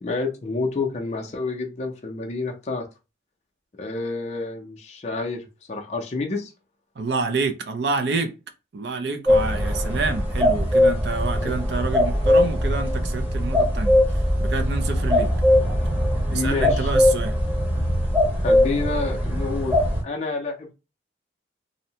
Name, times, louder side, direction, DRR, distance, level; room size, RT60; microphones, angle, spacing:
voice 1, 0.0-2.9 3.8-6.5 11.4-11.5 16.3-16.9 18.4-20.7, left 3 dB, 35° left, 0.4 m, -29 dB
voice 2, 7.0-8.3 8.7-14.0 14.4-15.3 16.3-17.3, right 4 dB, 60° right, 0.4 m, -28 dB
sound 1, 9.3-20.0, left 1 dB, 10° right, 0.8 m, -21 dB
2.6 x 2.1 x 2.7 m
head